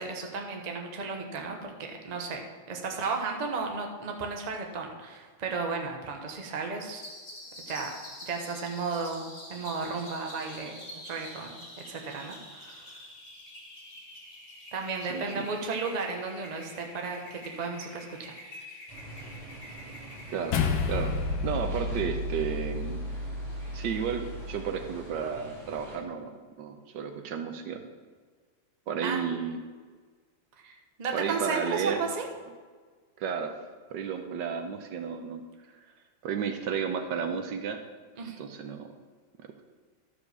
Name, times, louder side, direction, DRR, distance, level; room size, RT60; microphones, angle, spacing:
voice 1, 0.0-7.0 7.7-11.6 11.9-13.0 14.7-18.3 29.0-29.3 30.6-32.3 38.2-38.4, right 4 dB, 30° right, 2 dB, 0.8 m, -34 dB
sound 1, 7.0-22.2, left 1 dB, 25° left, 1.9 m, -47 dB
voice 2, 15.0-15.5 20.3-20.6 20.9-21.1 21.4-23.0 23.7-26.3 26.6-27.8 28.9-29.6 31.1-32.1 33.2-33.6 33.9-35.4 36.2-37.8 38.4-38.9 39.4-39.5, right 7 dB, 70° right, 6 dB, 1.4 m, -32 dB
sound 2, 18.9-26.0, right 1 dB, ahead, 3.5 m, -46 dB
sound 3, 20.5-25.1, left 3 dB, 80° left, 1.6 m, -31 dB
12.0 x 5.1 x 6.7 m, 1.5 s
omnidirectional pair, 2.1 m